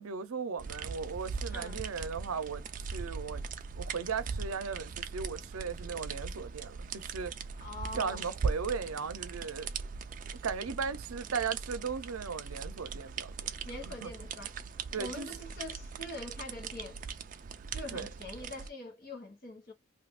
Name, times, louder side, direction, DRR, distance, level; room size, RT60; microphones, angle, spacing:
voice 1, 0.0-2.6 2.9-3.4 3.8-7.3 8.0-9.7 10.4-13.3 14.0-14.1 14.9-15.3 17.9-18.1, right 5 dB, 90° right, 0.6 m, -37 dB
sound 1, 0.6-18.7, right 5 dB, 40° right, 0.3 m, -40 dB
voice 2, 7.6-8.2 13.6-14.5 15.0-17.0 17.7-19.7, left 2 dB, 45° left, 1.0 m, -43 dB
2.7 x 2.4 x 3.5 m
head